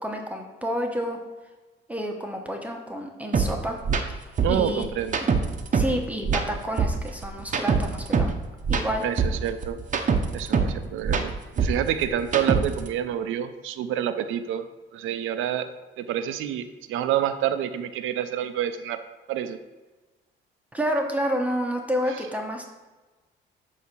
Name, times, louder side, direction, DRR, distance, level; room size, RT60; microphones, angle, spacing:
voice 1, 0.0-1.2 1.9-3.8 4.1-4.9 5.7-8.3 8.7-9.0 20.7-22.7, equal, 5° right, 1 dB, 1.0 m, -29 dB
sound 1, 3.3-3.5 3.8-4.0 4.4-6.0 6.2-8.4 8.6-10.8 11.0-12.9, right 5 dB, 40° right, 0.8 m, -23 dB
voice 2, 4.4-5.2 9.0-9.8 10.3-11.3 11.6-14.6 14.9-15.7 16.0-19.0 19.3-19.6, right 10 dB, 85° right, 10 dB, 0.5 m, -28 dB
8.3 x 2.8 x 6.1 m, 1.2 s
cardioid pair, 90°, 20 cm